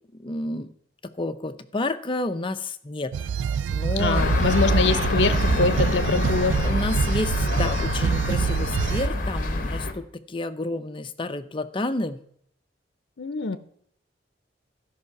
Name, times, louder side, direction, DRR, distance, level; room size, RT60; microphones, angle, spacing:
voice 1, 0.1-0.7 1.2-3.1 3.7-4.5 6.6-12.2, left 2 dB, 30° left, 10 dB, 0.6 m, -30 dB
sound 1, 3.1-9.1, right 7 dB, 75° right, 0.3 m, -26 dB
voice 2, 4.0-6.6 13.2-13.6, left 4 dB, 65° left, 13 dB, 0.7 m, -24 dB
sound 2, 4.1-9.9, left 2 dB, 50° left, 1.0 m, -26 dB
12.5 x 5.6 x 5.8 m, 0.66 s
head